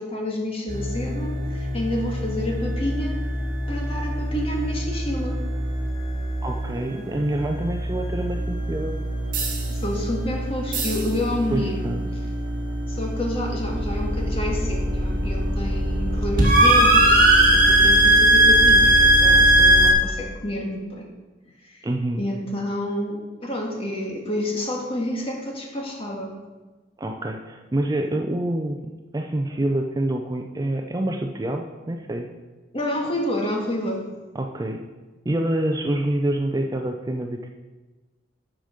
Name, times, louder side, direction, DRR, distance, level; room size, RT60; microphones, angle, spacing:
voice 1, 0.0-3.2 3.7-5.4 9.7-11.9 12.9-21.1 21.6-21.9 22.2-26.4 32.7-34.1, left 1 dB, 30° left, 0 dB, 1.7 m, -29 dB
sound 1, 0.7-19.9, right 1 dB, 45° right, 1.9 m, -21 dB
voice 2, 6.4-9.0 11.5-12.1 21.8-22.3 27.0-32.3 34.3-34.8 35.3-37.5, right 1 dB, 20° right, 4 dB, 0.4 m, -27 dB
12.0 x 5.1 x 5.0 m, 1.2 s
head